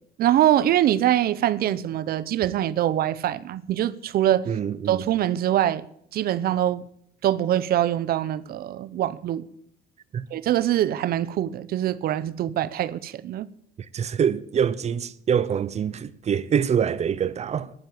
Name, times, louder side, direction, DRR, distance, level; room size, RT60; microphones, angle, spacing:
voice 1, 0.2-4.5 4.9-5.8 6.1-6.8 7.2-9.4 10.3-13.5, right 12 dB, 65° right, 0.8 m, -23 dB
voice 2, 4.5-5.1 10.1-10.3 13.9-17.7, right 8 dB, 40° right, 0.9 m, -25 dB
11.0 x 10.0 x 8.4 m
cardioid pair, 110°, 17 cm